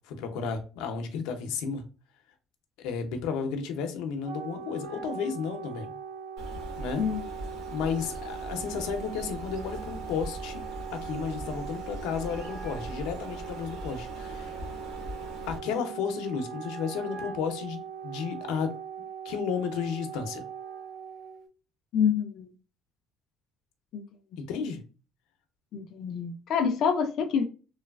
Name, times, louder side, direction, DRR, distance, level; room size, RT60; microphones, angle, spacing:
voice 1, 0.1-1.8 2.8-6.0 6.8-7.1 7.7-10.6 10.9-14.6 15.5-18.7 19.2-20.4 24.4-24.8, left 6 dB, 90° left, 0.6 m, -33 dB
Wind instrument woodwind instrument, 4.0-21.5, right 7 dB, 90° right, 0.5 m, -40 dB
Bird, 6.4-15.6, right 1 dB, 60° right, 0.9 m, -41 dB
voice 2, 21.9-22.5 23.9-24.0 25.7-27.5, left 7 dB, 45° left, 0.3 m, -27 dB
3.1 x 2.3 x 2.2 m
cardioid pair, 175°, 0 cm